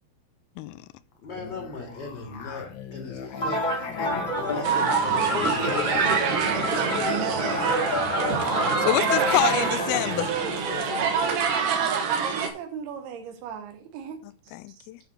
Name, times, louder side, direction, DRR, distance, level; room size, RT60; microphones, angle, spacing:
voice 1, 1.2-7.0, left 3 dB, 35° left, 2.2 m, -40 dB
Musical instrument, 1.3-11.4, left 5 dB, 60° left, 2.2 m, -38 dB
sound 1, 3.4-9.4, left 1 dB, 20° left, 1.3 m, -28 dB
sound 2, 4.6-12.5, right 6 dB, 65° right, 2.8 m, -26 dB
voice 2, 6.0-7.9 12.1-14.2 14.8-14.9, right 7 dB, 90° right, 3.1 m, -35 dB
voice 3, 8.8-10.3 14.2-15.0, left 16 dB, 85° left, 2.4 m, -27 dB
9.6 x 4.6 x 6.6 m
omnidirectional pair, 4.4 m